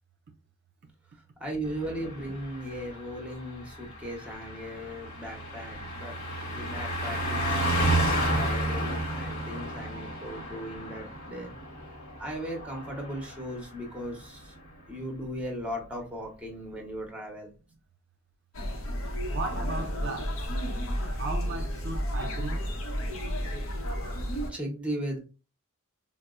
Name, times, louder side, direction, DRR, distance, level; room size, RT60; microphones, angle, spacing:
voice 1, 1.4-6.2 6.5-11.5 12.2-14.5 14.9-17.5 24.5-25.2, equal, 5° right, 0.8 m, -37 dB
Car passing by, 1.7-13.7 14.0-14.2, right 1 dB, 45° left, 1.0 m, -32 dB
sound 1, 18.5-24.5, equal, 70° left, 0.7 m, -32 dB
voice 2, 19.3-20.5 21.2-22.7, right 3 dB, 50° right, 0.4 m, -36 dB
4.0 x 2.0 x 2.3 m
head